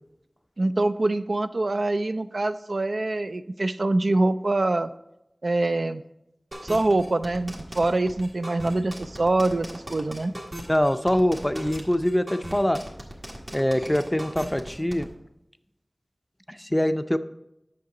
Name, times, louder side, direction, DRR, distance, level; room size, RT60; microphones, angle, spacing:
voice 1, 0.6-4.9 5.4-6.0 6.6-10.3, right 2 dB, 75° right, 11 dB, 0.3 m, -24 dB
sound 1, 6.5-15.0, right 1 dB, 55° right, 1.7 m, -38 dB
voice 2, 10.7-12.8 13.5-15.1 16.5-17.2, left 1 dB, 15° left, 10 dB, 0.4 m, -24 dB
8.4 x 6.6 x 3.8 m, 0.86 s
wide cardioid pair, 45°, 0 cm